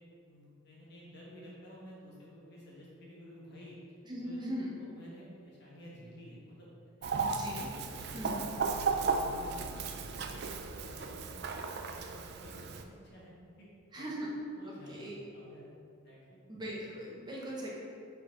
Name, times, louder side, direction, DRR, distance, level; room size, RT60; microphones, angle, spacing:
voice 1, 0.3-3.8 4.2-4.4 4.8-6.7 7.0-7.3 7.9-8.4 8.8-11.1 11.6-14.1 14.5-15.1 15.3-15.7 16.0-16.4, equal, 50° left, -5 dB, 1.5 m, -53 dB
voice 2, 4.1-4.8 7.2-7.7 8.1-8.4 13.9-14.3 14.9-15.2 16.5-17.7, right 1 dB, 20° right, -4 dB, 0.7 m, -39 dB
Chicken rooster, 7.0-12.8, right 4 dB, 50° right, 0.4 m, -35 dB
6.4 x 4.4 x 3.7 m, 2.5 s
head